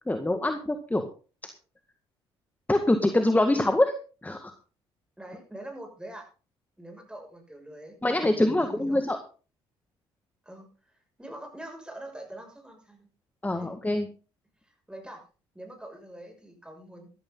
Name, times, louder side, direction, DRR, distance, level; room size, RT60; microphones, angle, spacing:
voice 1, 0.1-1.1 2.7-3.9 4.2-4.5 8.0-9.2 13.4-14.1, left 1 dB, 10° left, 7 dB, 1.8 m, -24 dB
voice 2, 5.2-6.3 6.8-9.0 10.4-13.1 13.5-13.7 14.7-15.2 15.5-17.1, right 1 dB, 5° right, 3 dB, 6.5 m, -44 dB
13.5 x 13.0 x 3.9 m, 0.35 s
hypercardioid pair, 50°, 13 cm